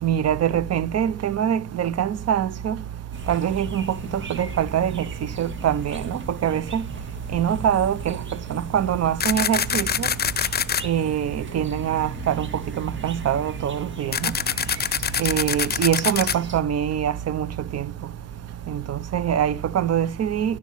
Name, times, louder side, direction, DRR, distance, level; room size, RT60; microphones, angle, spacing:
voice 1, 0.0-2.8 3.3-3.8 4.3-5.1 5.4-6.8 7.3-8.2 8.5-10.1 10.8-12.5 12.8-14.3 15.2-17.5 17.7-17.9 18.7-20.6, right 9 dB, 55° right, 0.8 m, -24 dB
sound 1, 3.1-16.6, right 2 dB, 40° right, 1.8 m, -37 dB
sound 2, 9.2-10.8 14.1-16.4, left 8 dB, 35° left, 0.6 m, -24 dB
13.5 x 10.5 x 5.8 m
cardioid pair, 90°, 30 cm